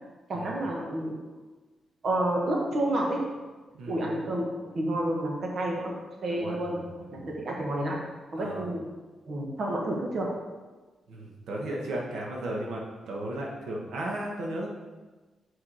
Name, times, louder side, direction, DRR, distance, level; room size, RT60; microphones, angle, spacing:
voice 1, 0.3-1.2 2.0-3.2 3.9-6.8 7.1-8.0 8.3-8.9 9.3-10.3, right 1 dB, 50° right, -1 dB, 1.3 m, -29 dB
voice 2, 3.7-4.2 6.3-7.3 8.3-8.7 11.1-14.7, right 1 dB, 90° right, -2 dB, 1.2 m, -35 dB
6.5 x 4.8 x 4.9 m, 1.2 s
wide cardioid pair, 145°, 0 cm